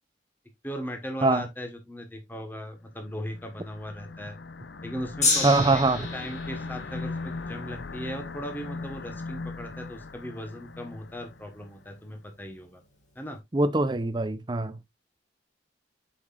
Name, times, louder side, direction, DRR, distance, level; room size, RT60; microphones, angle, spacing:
voice 1, 0.6-4.3 4.8-5.8 6.1-12.8 13.1-13.4, equal, 10° left, 1.4 m, -38 dB
sound 1, 3.1-11.7, left 3 dB, 70° left, 0.7 m, -39 dB
Gong, 5.2-11.6 12.4-12.5, left 3 dB, 40° left, 2.4 m, -33 dB
voice 2, 5.4-6.0 13.5-14.8, right 2 dB, 25° right, 0.6 m, -23 dB
7.8 x 5.8 x 2.5 m
head